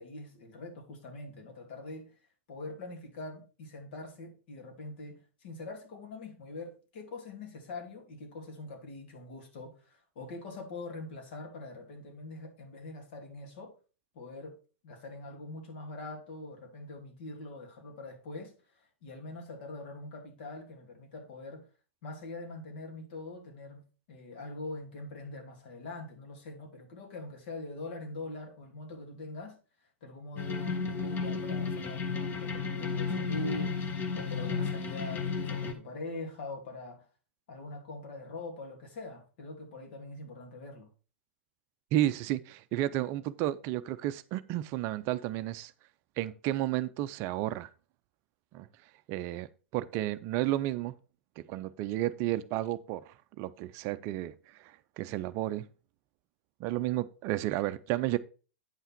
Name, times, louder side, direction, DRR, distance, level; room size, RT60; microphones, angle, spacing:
voice 1, 0.0-2.1 2.5-13.7 14.1-14.6 14.8-18.5 19.0-21.7 22.0-29.6 30.0-37.1 37.5-40.9, left 2 dB, 55° left, 2.9 m, -43 dB
sound 1, 30.4-35.7, left 5 dB, 30° left, 1.6 m, -33 dB
voice 2, 41.9-45.7 46.2-47.7 48.5-48.7 49.1-50.9 51.5-55.7 56.6-58.2, right 14 dB, 40° right, 0.5 m, -32 dB
9.1 x 5.6 x 4.3 m
figure-of-eight pair, 105°, 7 cm